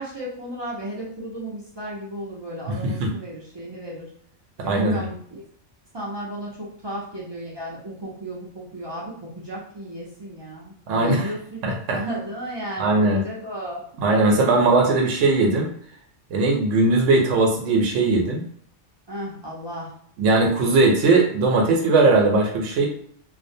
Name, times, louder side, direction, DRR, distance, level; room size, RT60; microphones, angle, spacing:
voice 1, 0.0-4.1 4.6-5.5 5.9-11.6 11.9-13.8 19.1-19.9, right 1 dB, 40° right, -5 dB, 0.4 m, -34 dB
voice 2, 2.7-3.1 4.6-5.0 10.9-11.3 11.6-12.0 12.8-13.2 14.0-15.7 16.3-18.4 20.2-22.9, right 3 dB, 90° right, 1 dB, 0.9 m, -19 dB
2.5 x 2.0 x 2.6 m, 0.63 s
omnidirectional pair, 1.3 m